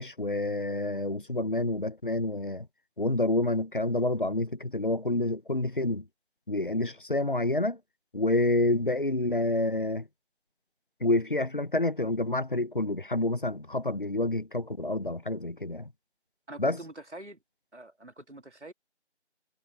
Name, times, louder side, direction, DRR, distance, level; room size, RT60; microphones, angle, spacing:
voice 1, 0.0-2.7 3.0-6.0 6.5-7.8 8.1-10.1 11.0-15.9 16.6-16.8, left 2 dB, 45° left, 0.9 m, -28 dB
voice 2, 16.5-17.4 17.7-18.7, right 1 dB, 75° right, 3.3 m, -45 dB
figure-of-eight pair, 175°, 35 cm